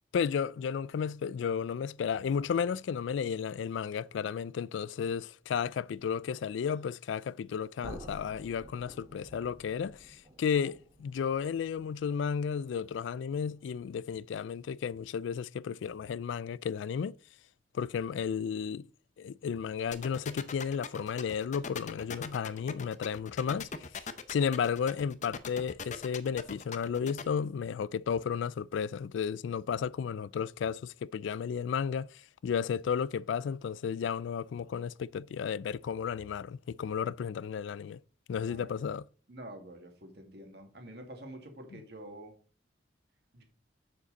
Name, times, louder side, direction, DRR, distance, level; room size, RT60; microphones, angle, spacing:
voice 1, 0.1-17.1 17.7-18.9 19.2-23.7 24.3-38.0 38.3-39.1, left 7 dB, 75° left, 0.3 m, -33 dB
sound 1, 7.8-13.7, right 1 dB, 25° right, 1.8 m, -52 dB
sound 2, 19.9-27.2, left 6 dB, 40° left, 0.7 m, -40 dB
voice 2, 38.4-38.8 39.3-42.3 43.3-43.4, right 1 dB, 60° right, 2.1 m, -47 dB
7.4 x 6.9 x 4.0 m
head